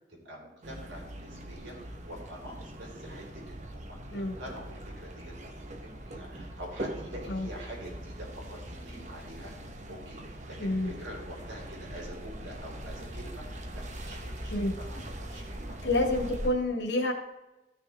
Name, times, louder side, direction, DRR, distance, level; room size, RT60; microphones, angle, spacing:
voice 1, 0.2-9.5 9.9-16.3, right 1 dB, 85° right, -2 dB, 4.0 m, -46 dB
sound 1, 0.6-16.5, right 1 dB, 40° right, 1.1 m, -41 dB
voice 2, 10.6-10.9 14.5-14.7 15.8-17.1, left 1 dB, 70° left, 1 dB, 1.8 m, -28 dB
15.0 x 6.4 x 3.5 m, 1.0 s
head